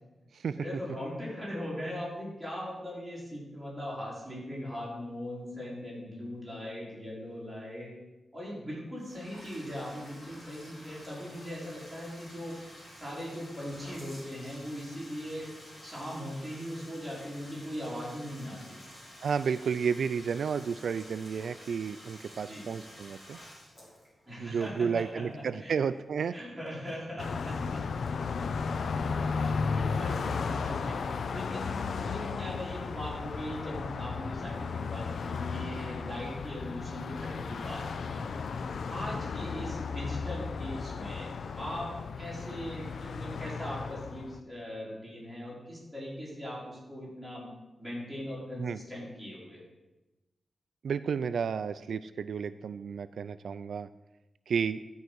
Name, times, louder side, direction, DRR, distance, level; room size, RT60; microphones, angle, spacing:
voice 1, 0.5-7.9 8.3-12.6 13.0-15.5 15.8-18.9 22.5-22.7 24.3-25.8 26.3-27.8 29.2-38.3 38.9-41.3 41.5-41.9 42.2-47.5 47.8-49.6, equal, ahead, -7 dB, 4.0 m, -40 dB
Bathtub (filling or washing), 9.0-25.7, equal, 25° left, 3.6 m, -51 dB
voice 2, 19.2-23.4 24.4-26.3 48.6-48.8 50.8-53.9 54.5-54.8, right 6 dB, 75° right, 13 dB, 0.3 m, -32 dB
Car passing by, 27.2-44.4, left 5 dB, 65° left, 0.5 m, -34 dB
12.0 x 4.8 x 7.9 m, 1.0 s
wide cardioid pair, 175°, 0 cm